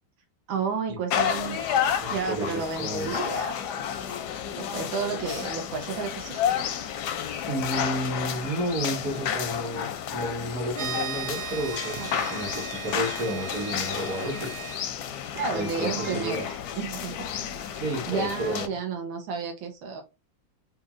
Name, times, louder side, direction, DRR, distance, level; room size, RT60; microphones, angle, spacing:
voice 1, 0.5-1.6 2.1-3.5 4.6-6.7 12.0-12.4 15.3-16.5 16.8-17.3 18.1-20.0, right 5 dB, 85° right, 1.6 m, -32 dB
sound 1, 1.1-18.7, left 9 dB, 75° left, 1.0 m, -31 dB
voice 2, 2.0-3.2 7.5-14.7 15.5-16.4 17.7-18.7, right 1 dB, 45° right, 1.8 m, -31 dB
sound 2, 10.7-14.8, right 6 dB, 70° right, 1.0 m, -37 dB
sound 3, 11.3-13.2 15.4-16.9, right 5 dB, 30° right, 1.3 m, -46 dB
4.3 x 2.7 x 2.4 m
omnidirectional pair, 2.1 m